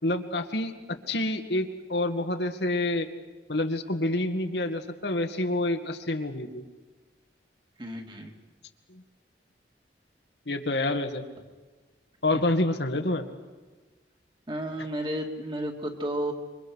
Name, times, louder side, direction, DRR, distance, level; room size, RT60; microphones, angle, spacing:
voice 1, 0.0-3.1 3.5-6.6 8.9-9.0 10.5-11.2 12.2-13.3, left 2 dB, 75° left, 6 dB, 2.0 m, -28 dB
voice 2, 7.8-8.3 14.5-16.3, right 1 dB, 25° right, 3 dB, 2.5 m, -32 dB
27.0 x 24.0 x 6.4 m, 1.3 s
head